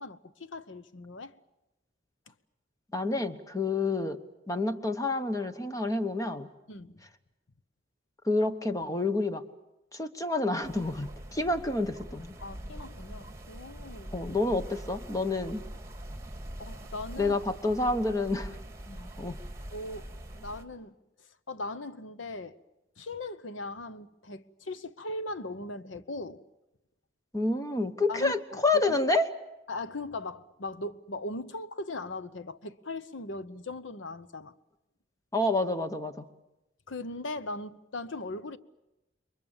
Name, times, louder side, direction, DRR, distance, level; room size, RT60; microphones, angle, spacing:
voice 1, 0.0-1.3 6.7-7.0 12.4-14.2 16.6-17.4 18.9-19.1 19.7-20.9 21.5-22.6 23.0-26.4 28.1-29.0 29.7-34.5 36.9-38.6, left 2 dB, 70° left, 1.0 m, -39 dB
voice 2, 2.9-4.2 4.5-6.5 8.2-9.4 9.9-12.4 14.1-15.6 17.2-18.5 19.2-19.4 27.3-29.3 35.3-36.2, left 2 dB, 15° left, 1.1 m, -28 dB
sound 1, 10.6-20.6, right 1 dB, 15° right, 2.6 m, -43 dB
28.5 x 23.0 x 7.2 m
head